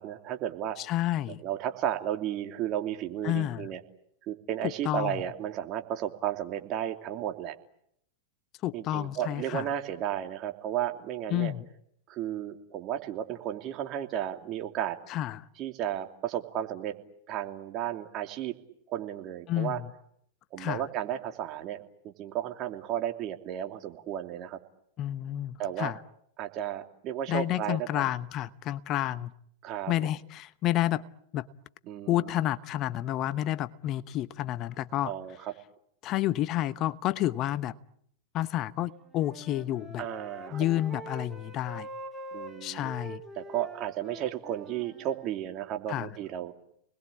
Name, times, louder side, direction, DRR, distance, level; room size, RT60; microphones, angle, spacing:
voice 1, 0.0-0.8 1.3-3.8 4.3-7.5 8.7-11.5 12.1-15.0 15.6-16.9 17.3-18.6 18.9-19.8 20.5-24.6 25.6-25.9 26.4-28.1 29.6-29.9 31.8-32.3 35.0-35.5 40.0-40.6 42.3-42.9 43.4-46.6, right 10 dB, 40° right, 3.0 m, -33 dB
voice 2, 0.8-1.4 3.2-3.7 4.6-5.2 8.6-9.7 11.3-11.6 15.1-15.4 19.5-19.9 20.6-20.8 25.0-26.0 27.3-29.3 29.9-31.0 31.3-31.5 32.1-35.1 36.0-37.8 38.3-40.1 40.5-41.9 42.6-43.2 45.9-46.1, left 13 dB, 40° left, 1.0 m, -30 dB
Wind instrument woodwind instrument, 38.9-45.3, right 1 dB, ahead, 4.0 m, -44 dB
29.5 x 21.0 x 8.6 m
hypercardioid pair, 100°, 0 cm